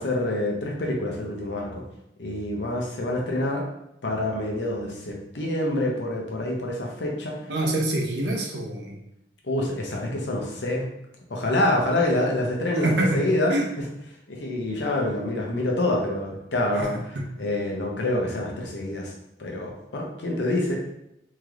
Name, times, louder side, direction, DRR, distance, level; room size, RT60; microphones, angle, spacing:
voice 1, 0.0-1.8 2.2-3.6 4.0-7.4 9.4-10.8 11.3-13.5 14.3-19.1 19.4-20.8, left 1 dB, 75° left, -1 dB, 0.7 m, -26 dB
voice 2, 7.5-9.0 12.8-13.2 13.5-13.7 16.7-16.9 17.1-17.3, right 1 dB, 65° right, 0 dB, 0.6 m, -25 dB
3.2 x 2.9 x 2.4 m, 0.83 s
head